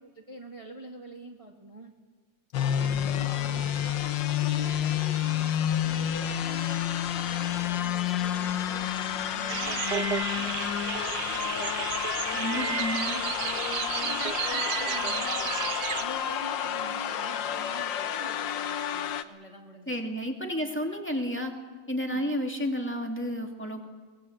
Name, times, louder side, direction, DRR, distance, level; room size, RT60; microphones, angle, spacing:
voice 1, 0.0-1.9 2.6-11.8 12.2-21.0 22.1-22.3, right 1 dB, 15° right, 1 dB, 2.1 m, -46 dB
sound 1, 2.5-19.2, left 10 dB, 75° left, 1.6 m, -30 dB
sound 2, 9.5-16.0, right 8 dB, 65° right, 1.5 m, -32 dB
voice 2, 12.3-13.2 19.9-21.5 21.9-23.9, equal, 5° left, 2 dB, 2.4 m, -31 dB
24.0 x 21.0 x 8.0 m, 1.4 s
omnidirectional pair, 2.1 m